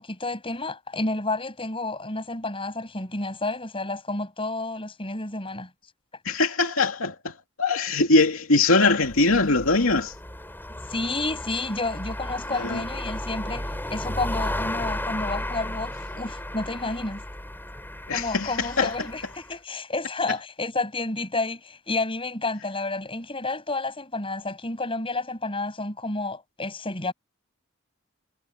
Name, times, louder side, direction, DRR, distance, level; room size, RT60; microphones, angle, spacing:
voice 1, 0.0-5.7 10.9-17.2 18.1-27.1, left 2 dB, 25° left, 7.6 m, -30 dB
voice 2, 6.2-10.1 12.6-12.8 18.1-18.9, left 3 dB, 90° left, 2.5 m, -22 dB
sound 1, 8.9-19.5, left 1 dB, 10° left, 7.3 m, -34 dB
head